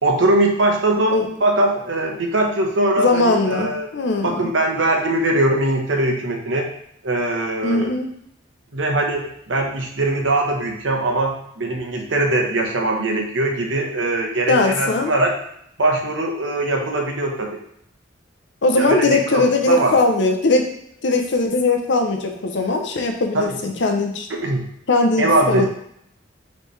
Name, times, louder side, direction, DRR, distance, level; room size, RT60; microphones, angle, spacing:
voice 1, 0.0-3.9 4.2-6.7 7.0-7.9 8.7-15.3 15.8-17.5 18.7-19.9 23.3-23.4 24.4-24.7 25.2-25.7, right 2 dB, 75° right, 2 dB, 0.9 m, -21 dB
voice 2, 3.0-4.5 7.6-8.1 14.5-15.1 18.6-20.7 21.0-24.3 24.9-25.7, left 2 dB, 65° left, 4 dB, 0.7 m, -19 dB
5.1 x 3.2 x 3.2 m, 0.72 s
head